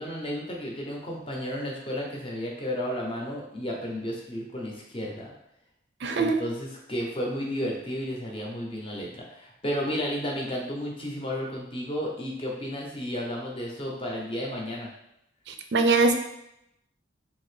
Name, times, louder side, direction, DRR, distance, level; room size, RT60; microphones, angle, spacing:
voice 1, 0.0-5.3 6.1-14.9, equal, 30° left, -2 dB, 0.6 m, -33 dB
voice 2, 6.0-6.4 15.7-16.2, right 3 dB, 60° right, 6 dB, 0.4 m, -21 dB
2.7 x 2.6 x 3.2 m, 0.81 s
head